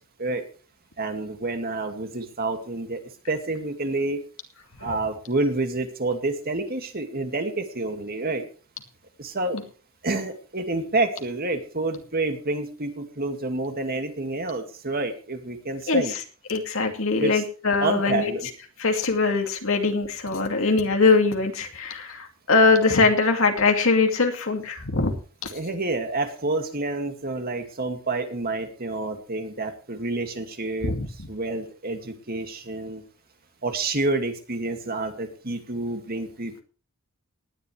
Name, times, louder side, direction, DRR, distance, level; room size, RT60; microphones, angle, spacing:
voice 1, 1.0-3.0 3.3-4.2 4.8-8.4 9.2-9.6 10.0-16.1 17.2-17.4 17.8-18.5 20.6-20.7 25.5-30.9 31.3-33.0 33.6-36.6, right 2 dB, 45° right, 6 dB, 2.3 m, -28 dB
voice 2, 15.9-16.2 16.5-18.3 18.8-25.1 25.4-25.5 30.8-31.1, left 4 dB, 65° left, 3 dB, 2.5 m, -22 dB
19.0 x 11.0 x 3.4 m, 0.38 s
head